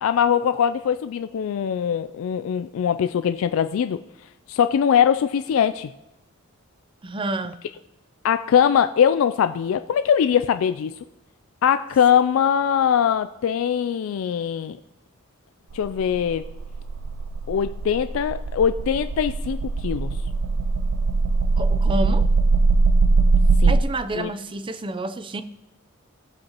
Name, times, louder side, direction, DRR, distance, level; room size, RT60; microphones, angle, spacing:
voice 1, 0.0-4.0 4.5-5.9 8.2-10.9 11.6-14.8 15.7-16.5 17.5-20.1 23.6-23.8 24.2-24.3, left 8 dB, 70° left, 11 dB, 0.3 m, -21 dB
voice 2, 7.0-7.6 21.6-22.3 23.7-25.4, right 2 dB, 25° right, 11 dB, 0.5 m, -29 dB
sound 1, 15.8-23.8, right 3 dB, 80° right, 0.5 m, -21 dB
16.0 x 7.5 x 2.9 m, 0.95 s
head